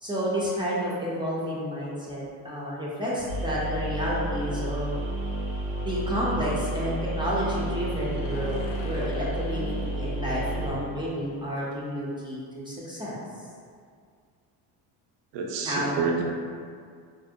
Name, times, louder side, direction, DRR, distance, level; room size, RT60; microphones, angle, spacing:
voice 1, 0.0-4.9 5.8-13.2 15.6-15.9, equal, 10° right, -7 dB, 0.4 m, -30 dB
sound 1, 3.3-10.7, right 1 dB, 80° right, 1.0 m, -31 dB
sound 2, 5.7-11.9, left 4 dB, 65° left, 0.5 m, -46 dB
voice 2, 15.3-16.2, right 5 dB, 65° right, -1 dB, 0.5 m, -28 dB
2.5 x 2.0 x 2.6 m, 2.1 s
supercardioid pair, 90°, 45 cm